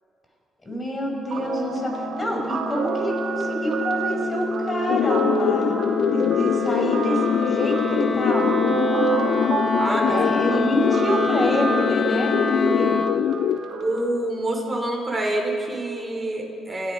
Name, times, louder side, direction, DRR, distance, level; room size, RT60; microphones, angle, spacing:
voice 1, 0.6-5.7 6.0-8.8 10.1-13.0, equal, 20° left, 1 dB, 6.0 m, -27 dB
Guitar, 1.3-14.0, right 5 dB, 60° right, 3.3 m, -29 dB
Wind instrument woodwind instrument, 1.7-13.2, left 4 dB, 40° left, 1.4 m, -29 dB
sound 1, 4.9-13.6, left 10 dB, 75° left, 0.4 m, -24 dB
voice 2, 9.8-10.7 13.8-16.9, right 1 dB, 15° right, 0 dB, 5.4 m, -27 dB
29.5 x 16.5 x 5.4 m, 2.8 s
cardioid pair, 90°, 0 cm